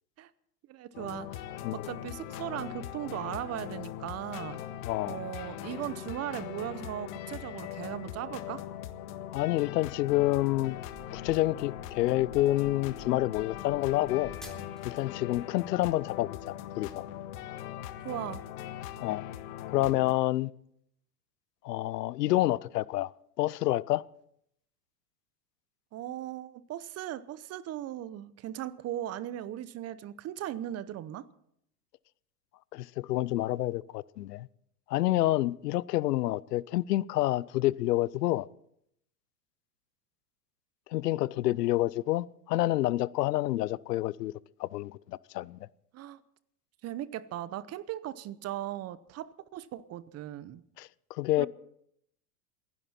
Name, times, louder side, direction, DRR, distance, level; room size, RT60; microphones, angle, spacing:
voice 1, 0.7-1.4 1.7-4.6 5.1-8.6 18.0-18.4 25.9-31.3 45.9-46.2 46.8-50.6 51.4-51.5, right 12 dB, 30° right, 0.8 m, -38 dB
sound 1, 0.9-20.1, left 11 dB, 60° left, 1.6 m, -41 dB
voice 2, 4.8-5.2 9.3-10.8 11.1-14.3 14.8-17.1 19.0-19.2 19.7-20.5 21.6-23.1 23.4-24.0 32.7-34.5 34.9-38.5 40.9-44.3 44.6-45.6 50.8-51.5, left 16 dB, 80° left, 0.6 m, -28 dB
sound 2, 10.9-15.1, right 1 dB, ahead, 3.7 m, -51 dB
28.5 x 11.0 x 4.3 m
hypercardioid pair, 110°, 47 cm